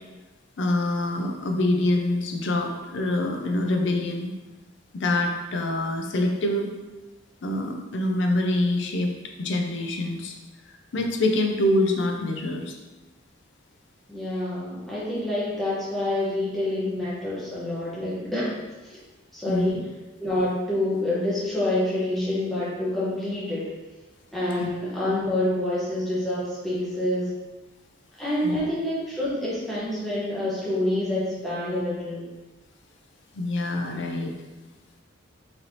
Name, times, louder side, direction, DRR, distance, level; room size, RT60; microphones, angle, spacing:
voice 1, 0.6-4.3 4.9-6.7 7.4-9.1 9.4-10.3 10.7-12.8 19.5-19.8 24.6-24.7 28.4-28.6 33.3-34.3, left 1 dB, 60° left, 3 dB, 0.4 m, -25 dB
voice 2, 14.1-18.5 18.8-19.0 19.3-19.8 20.2-23.7 24.3-27.3 28.2-32.2, left 1 dB, ahead, -9 dB, 1.0 m, -27 dB
3.9 x 3.2 x 2.8 m, 1.2 s
head